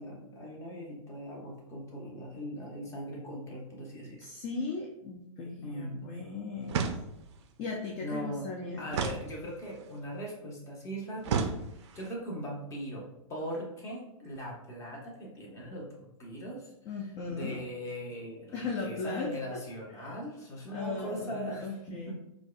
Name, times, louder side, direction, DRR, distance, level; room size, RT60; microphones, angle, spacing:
voice 1, 0.0-4.2 5.6-6.1 8.0-8.5 8.8-11.6 11.9-16.7 17.3-22.1, equal, 15° left, -3 dB, 1.0 m, -40 dB
voice 2, 4.2-6.9 7.6-8.9 16.9-17.6 18.5-19.6 19.9-20.2 20.7-22.1, left 4 dB, 35° left, 0 dB, 0.5 m, -37 dB
sound 1, 6.7-7.4 8.9-9.9 11.2-12.1, right 6 dB, 55° right, 0.4 m, -33 dB
4.5 x 2.3 x 2.4 m, 0.83 s
figure-of-eight pair, 115°, 17 cm